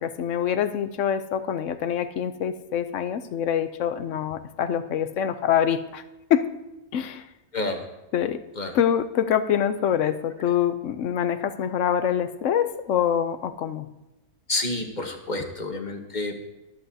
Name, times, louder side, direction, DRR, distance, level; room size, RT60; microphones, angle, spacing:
voice 1, 0.0-6.0 6.3-6.5 6.9-7.3 8.1-8.4 8.7-13.9, left 9 dB, 65° left, 10 dB, 0.9 m, -25 dB
voice 2, 7.5-7.8 8.6-8.7 14.5-16.5, left 2 dB, 35° left, 4 dB, 1.1 m, -29 dB
22.5 x 7.9 x 2.7 m, 0.99 s
omnidirectional pair, 1.6 m